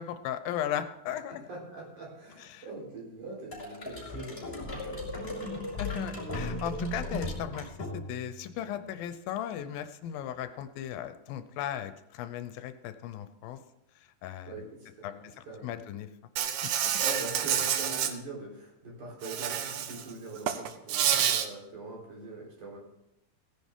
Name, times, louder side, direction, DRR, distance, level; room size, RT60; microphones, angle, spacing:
voice 1, 0.0-1.4 2.4-2.7 4.9-5.2 5.8-13.6 14.0-14.6 15.0-16.1 16.8-17.0, left 10 dB, 80° left, 10 dB, 2.4 m, -37 dB
voice 2, 1.5-5.6 14.5-15.2 15.5-15.7 17.0-22.8, right 2 dB, 55° right, -3 dB, 5.2 m, -43 dB
sound 1, 3.5-8.3, left 1 dB, 15° left, 4.5 m, -36 dB
Insect, 16.4-18.1 19.2-20.0 20.4-21.5, right 9 dB, 75° right, 1.8 m, -28 dB
17.0 x 10.5 x 3.7 m, 0.86 s
omnidirectional pair, 4.1 m